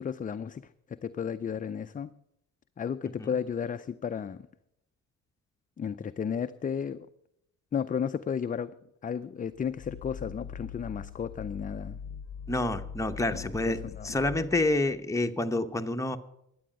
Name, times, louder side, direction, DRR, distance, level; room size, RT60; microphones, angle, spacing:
voice 1, 0.0-2.1 2.8-4.4 5.8-7.1 7.7-8.7 9.0-12.0 13.7-14.2, left 7 dB, 25° left, 0.5 m, -33 dB
sound 1, 9.5-15.0, left 7 dB, 65° left, 0.7 m, -42 dB
voice 2, 12.5-13.8 14.0-16.2, left 2 dB, 10° left, 1.0 m, -28 dB
11.5 x 8.6 x 8.7 m
cardioid pair, 90°, 30 cm